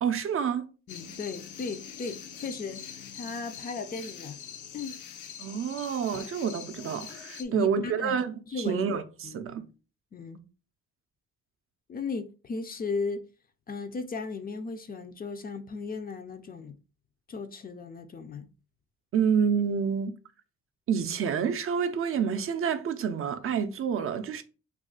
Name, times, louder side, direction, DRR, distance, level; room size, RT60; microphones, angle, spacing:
voice 1, 0.0-0.7 5.4-9.7 19.1-20.2 20.9-24.4, right 7 dB, 45° right, 0.4 m, -28 dB
sound 1, 0.9-7.4, left 8 dB, 80° left, 0.6 m, -43 dB
voice 2, 0.9-4.4 4.7-5.0 7.4-8.2 8.5-8.8 9.2-9.4 10.1-10.4 11.9-13.2 13.7-16.8 17.3-18.5, left 4 dB, 30° left, 0.4 m, -36 dB
2.4 x 2.3 x 3.7 m
cardioid pair, 90°, 30 cm